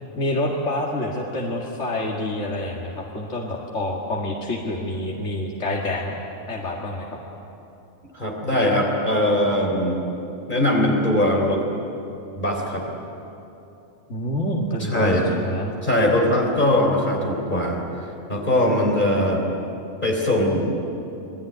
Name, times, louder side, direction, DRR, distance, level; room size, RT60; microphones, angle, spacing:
voice 1, 0.1-6.2 6.5-7.2 14.1-15.7, left 1 dB, 65° left, -2 dB, 2.3 m, -27 dB
voice 2, 8.1-10.0 10.5-11.6 12.3-12.9 14.8-15.3 15.8-17.8 18.3-19.4 20.0-20.7, left 1 dB, 40° left, 1 dB, 3.8 m, -21 dB
27.5 x 20.0 x 9.3 m, 2.8 s
omnidirectional pair, 1.3 m